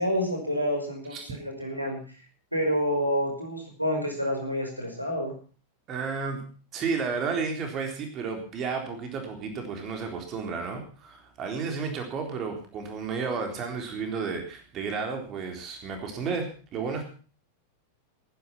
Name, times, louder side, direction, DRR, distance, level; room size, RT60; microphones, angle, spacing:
voice 1, 0.0-2.0 2.5-5.3, equal, 90° right, 2 dB, 5.6 m, -28 dB
voice 2, 5.9-6.5 6.7-17.0, right 5 dB, 35° right, 4 dB, 3.9 m, -32 dB
19.5 x 10.0 x 5.9 m, 0.40 s
figure-of-eight pair, 90°, 0 cm